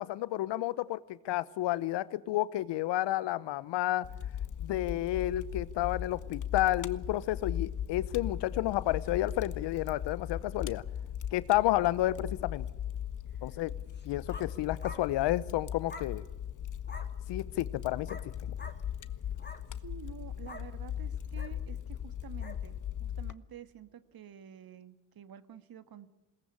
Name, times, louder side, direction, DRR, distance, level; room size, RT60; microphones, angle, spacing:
voice 1, 0.0-4.1 4.6-10.8 11.3-12.6 13.4-13.7 14.0-16.2 17.3-18.6, left 15 dB, 65° left, 19 dB, 0.9 m, -31 dB
Fire, 4.0-23.3, left 9 dB, 40° left, 1.1 m, -38 dB
voice 2, 13.3-13.6 19.8-26.1, right 8 dB, 50° right, 12 dB, 1.7 m, -50 dB
sound 1, 13.9-14.5 14.8-15.1 15.9-16.1 16.9-17.1 18.1-18.3 18.6-18.8 19.3-19.6 20.5-20.7 21.3-21.5 22.4-22.6, left 3 dB, 20° left, 3.3 m, -46 dB
21.0 x 18.5 x 8.6 m, 1.1 s
hypercardioid pair, 55°, 46 cm